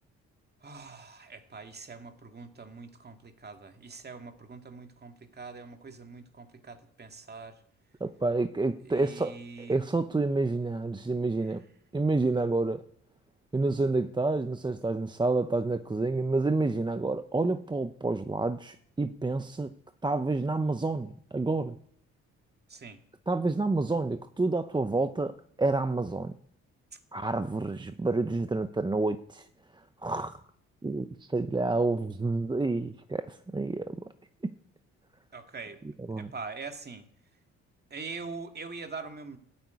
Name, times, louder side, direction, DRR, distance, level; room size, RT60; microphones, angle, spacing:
voice 1, 0.6-7.6 8.8-9.9 22.7-23.0 35.3-35.8 36.2-37.1 37.9-39.4, right 4 dB, 35° right, 2.2 m, -43 dB
voice 2, 8.0-11.6 11.9-12.8 13.5-19.7 20.0-21.8 23.3-26.3 27.1-29.5 30.0-30.4 30.8-34.1 34.4-34.5 36.1-36.3, right 3 dB, 15° right, 0.8 m, -29 dB
13.0 x 9.7 x 9.4 m
cardioid pair, 90°, 30 cm